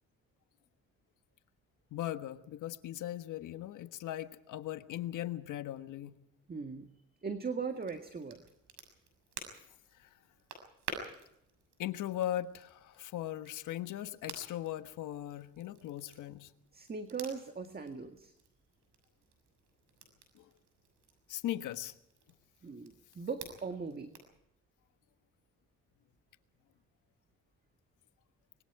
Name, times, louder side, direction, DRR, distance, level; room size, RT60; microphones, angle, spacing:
voice 1, 1.9-6.1 10.0-10.1 11.8-16.5 20.3-20.5 21.3-21.9, left 13 dB, 80° left, 9 dB, 1.4 m, -39 dB
voice 2, 6.5-6.9 7.2-8.4 16.7-18.3 22.6-24.2, right 5 dB, 30° right, 6 dB, 1.8 m, -39 dB
Crackle, 7.7-24.4, right 4 dB, 85° right, 6.6 m, -51 dB
25.0 x 22.0 x 4.8 m, 0.78 s
cardioid pair, 90°, 30 cm